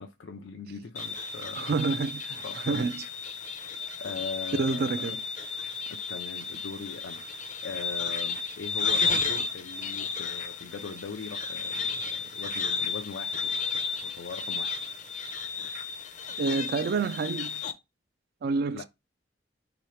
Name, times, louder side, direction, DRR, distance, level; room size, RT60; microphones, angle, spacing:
voice 1, 0.0-1.8 2.4-2.9 4.0-5.2 5.9-13.6 14.0-14.8 18.7-18.8, left 5 dB, 85° left, 0.5 m, -40 dB
sound 1, 0.9-17.7, left 5 dB, 40° left, 0.5 m, -33 dB
voice 2, 1.6-3.0 4.5-5.2 16.4-17.6 18.4-18.8, right 4 dB, 55° right, 0.3 m, -28 dB
4.6 x 2.9 x 3.1 m
head